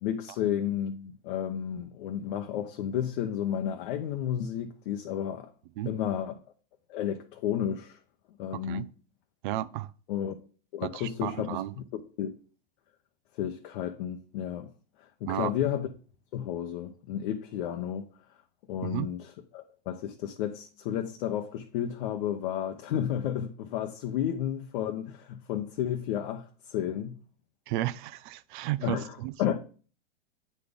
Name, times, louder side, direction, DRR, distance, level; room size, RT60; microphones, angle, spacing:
voice 1, 0.0-5.5 5.9-6.4 6.9-8.0 8.4-8.9 10.1-10.3 10.7-11.6 11.9-12.3 13.3-14.7 15.0-15.9 16.3-18.1 18.7-27.2 28.8-29.6, left 10 dB, 60° left, 0.9 m, -32 dB
voice 2, 9.4-9.9 10.9-11.7 15.2-15.5 18.8-19.1 27.7-29.3, right 15 dB, 55° right, 0.6 m, -33 dB
8.5 x 4.3 x 5.1 m
hypercardioid pair, 125°, 30 cm